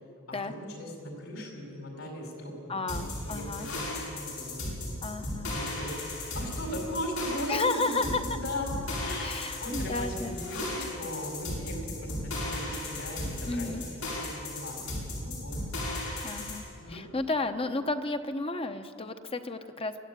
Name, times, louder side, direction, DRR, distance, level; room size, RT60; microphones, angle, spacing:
voice 1, 0.4-5.0 5.5-5.9 6.3-8.7 9.0-15.5 16.8-17.0, equal, 65° left, 2 dB, 5.1 m, -38 dB
voice 2, 2.7-3.7 5.0-5.5 7.5-8.4 9.2-10.4 13.4-13.8 16.2-20.0, left 3 dB, 25° left, 8 dB, 1.0 m, -32 dB
sound 1, 2.9-16.6, left 1 dB, 90° left, 7.3 m, -35 dB
23.5 x 13.5 x 9.5 m, 2.7 s
head